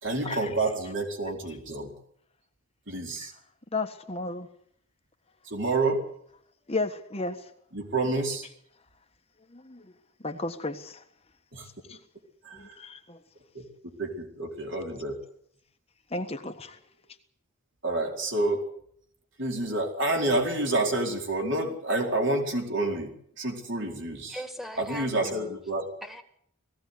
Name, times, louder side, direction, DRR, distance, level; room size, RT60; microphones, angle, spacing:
voice 1, 0.0-1.9 2.9-3.3 5.4-6.0 7.7-8.5 11.5-11.7 12.4-12.8 13.5-13.7 14.0-15.2 17.8-18.6 19.4-24.4 24.8-25.9, right 2 dB, 55° right, 2 dB, 4.3 m, -28 dB
voice 2, 3.7-4.5 6.7-7.4 9.5-9.8 10.2-11.0 11.9-12.0 12.5-13.2 16.1-17.0, left 3 dB, 25° left, 5 dB, 1.4 m, -34 dB
voice 3, 24.3-25.6 26.0-26.2, equal, ahead, 6 dB, 2.1 m, -40 dB
19.0 x 16.0 x 9.5 m, 0.68 s
head